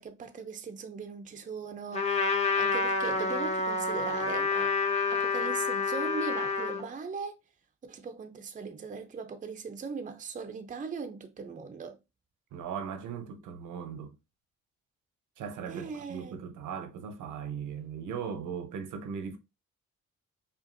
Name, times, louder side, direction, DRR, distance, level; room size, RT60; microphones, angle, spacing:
voice 1, 0.0-4.8 5.1-7.3 7.8-12.0 15.7-16.4, right 5 dB, 25° right, 0.6 m, -39 dB
Trumpet, 1.9-6.8, left 4 dB, 20° left, 1.0 m, -28 dB
voice 2, 12.5-14.2 15.4-19.4, right 7 dB, 80° right, 0.9 m, -38 dB
5.4 x 2.5 x 2.6 m
cardioid pair, 90°, 30 cm